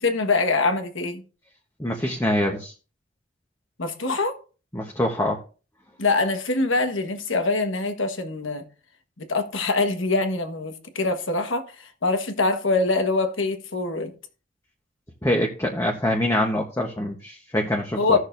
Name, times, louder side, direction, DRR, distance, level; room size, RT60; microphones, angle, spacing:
voice 1, 0.0-1.2 3.8-4.4 6.0-8.6 9.2-14.1 17.9-18.2, left 3 dB, 90° left, 1.4 m, -24 dB
voice 2, 1.8-2.7 4.7-5.4 15.2-18.2, left 1 dB, 15° left, 1.0 m, -24 dB
16.5 x 6.5 x 2.6 m
head